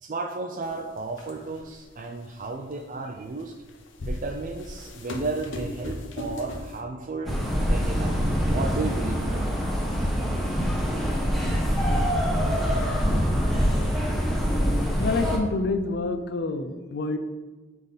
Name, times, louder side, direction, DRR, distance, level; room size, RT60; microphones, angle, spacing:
voice 1, 0.0-3.5 4.0-9.4, right 3 dB, 45° right, 1 dB, 0.5 m, -34 dB
sound 1, 0.6-0.7 1.2-1.7 2.4-2.5 3.5-6.8, left 1 dB, 90° left, 0.9 m, -36 dB
sound 2, 7.3-15.4, equal, ahead, 1.2 m, -24 dB
voice 2, 15.0-17.2, left 3 dB, 60° left, 9 dB, 0.5 m, -27 dB
11.0 x 3.8 x 4.0 m, 1.3 s
head